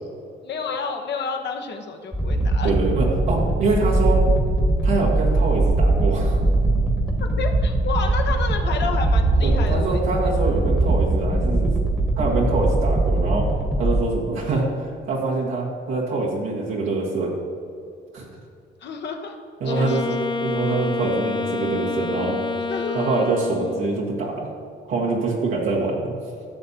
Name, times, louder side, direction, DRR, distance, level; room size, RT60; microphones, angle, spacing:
voice 1, 0.4-2.8 7.2-10.0 18.8-19.4 19.6-20.0 22.7-23.2, left 5 dB, 60° left, 4 dB, 1.0 m, -30 dB
sound 1, 2.1-14.0, right 2 dB, 5° right, 1.2 m, -21 dB
voice 2, 2.6-4.2 4.8-6.4 9.4-11.7 12.2-13.5 13.8-17.3 18.1-18.2 19.6-22.4 22.9-24.5 24.9-26.1, right 3 dB, 90° right, -4 dB, 1.6 m, -24 dB
Wind instrument woodwind instrument, 19.6-24.0, left 4 dB, 25° left, 0.4 m, -28 dB
13.0 x 6.6 x 2.9 m, 2.5 s
cardioid pair, 90°, 20 cm